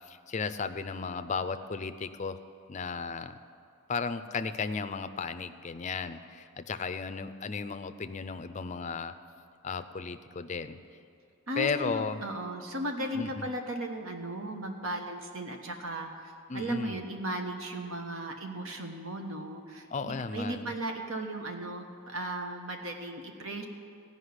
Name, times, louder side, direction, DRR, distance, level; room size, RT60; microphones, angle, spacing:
voice 1, 0.1-2.4 2.7-3.4 3.9-9.1 9.6-10.8 11.6-12.2 13.1-13.5 16.5-17.0 19.9-20.7, left 5 dB, 35° left, 10 dB, 0.5 m, -34 dB
voice 2, 11.5-23.7, right 1 dB, 70° right, 4 dB, 1.3 m, -36 dB
15.5 x 5.5 x 9.8 m, 2.4 s
head